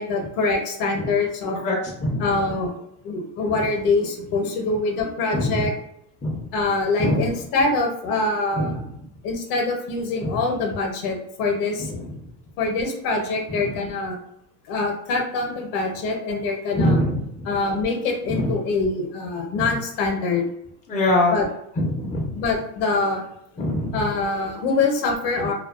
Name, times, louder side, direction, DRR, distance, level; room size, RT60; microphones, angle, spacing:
voice 1, 0.0-1.6 2.2-2.7 3.0-5.7 6.5-8.8 9.2-11.9 12.6-14.2 14.7-17.0 17.4-20.5 21.3-21.5 22.3-23.2 23.9-25.5, left 3 dB, 60° left, 2 dB, 0.7 m, -24 dB
voice 2, 1.6-2.2 5.3-5.7 6.2-6.4 7.0-7.2 8.6-8.7 10.2-10.3 16.8-17.2 18.3-18.5 19.6-19.7 20.9-21.3 21.8-22.4 23.6-23.9, left 1 dB, 20° left, -2 dB, 0.5 m, -22 dB
2.3 x 2.3 x 2.3 m, 0.75 s
supercardioid pair, 120°, 40 cm